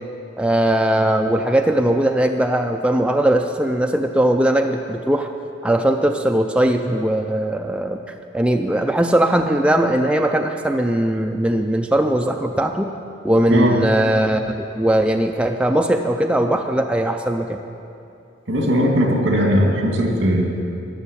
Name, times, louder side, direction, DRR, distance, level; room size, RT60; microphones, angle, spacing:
voice 1, 0.4-5.3 5.6-8.0 8.3-12.9 13.2-17.6, right 1 dB, 5° right, 3 dB, 0.4 m, -19 dB
voice 2, 18.5-20.5, equal, 70° right, 1 dB, 2.3 m, -18 dB
13.0 x 7.2 x 9.9 m, 2.7 s
head